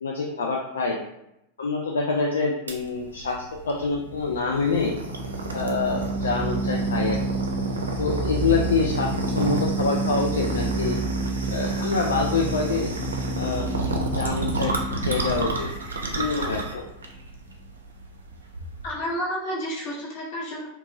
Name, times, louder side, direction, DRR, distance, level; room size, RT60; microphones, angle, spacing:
voice 1, 0.0-1.0 1.6-4.9 5.5-7.2 8.0-11.0 11.5-12.9 13.4-13.6 14.1-14.7 15.1-15.7 16.2-16.8, left 4 dB, 75° left, -1 dB, 0.3 m, -26 dB
sound 1, 2.7-18.9, right 2 dB, 80° right, 0.4 m, -31 dB
sound 2, 4.0-17.1, right 2 dB, 15° left, 0.5 m, -30 dB
voice 2, 18.8-20.7, equal, 55° left, -4 dB, 0.9 m, -30 dB
2.6 x 2.3 x 2.8 m, 0.84 s
figure-of-eight pair, 95°, 0 cm